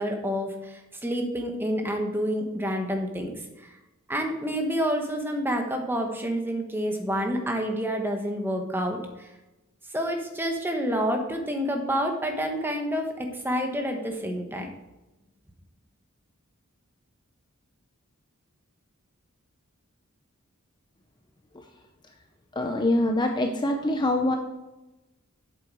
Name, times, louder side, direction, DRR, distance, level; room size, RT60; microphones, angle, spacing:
voice 1, 0.0-3.7 4.1-9.3 9.9-14.7, equal, 10° right, 3 dB, 1.1 m, -28 dB
voice 2, 22.6-24.4, left 1 dB, 20° left, 4 dB, 0.6 m, -24 dB
7.9 x 7.5 x 4.7 m, 1.0 s
head